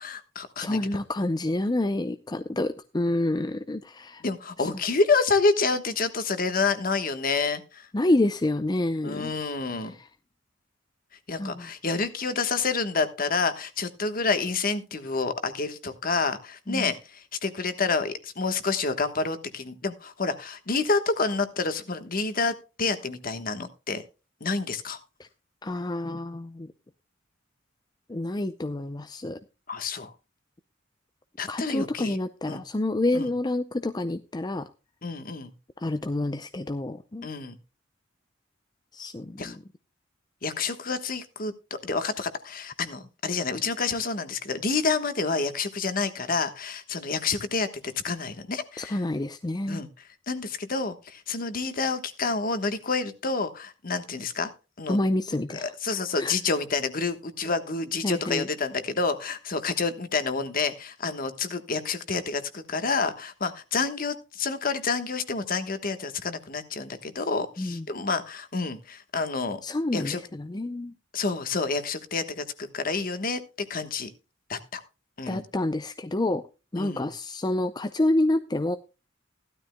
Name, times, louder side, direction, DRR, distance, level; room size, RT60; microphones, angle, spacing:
voice 1, 0.0-0.8 4.2-7.9 9.0-9.9 11.3-24.0 24.4-25.0 29.7-30.1 31.4-32.2 32.5-32.6 33.1-33.3 35.0-35.5 37.2-37.6 39.4-39.6 40.4-49.0 49.7-54.5 54.8-55.0 55.3-69.6 69.9-70.2 71.1-73.4 73.7-74.1 74.5-74.8 75.2-75.4 76.8-77.1, left 4 dB, 45° left, 10 dB, 1.3 m, -28 dB
voice 2, 0.6-4.2 4.6-4.7 7.9-9.3 9.8-10.1 11.4-11.7 16.7-16.9 25.2-25.3 25.6-26.7 28.1-29.4 31.5-34.7 35.8-37.3 38.9-39.6 48.8-49.8 54.9-56.3 58.0-58.5 67.6-67.8 69.6-70.9 75.3-76.4 76.7-78.8, left 1 dB, 20° left, 9 dB, 0.5 m, -28 dB
16.5 x 12.5 x 2.2 m, 0.30 s
head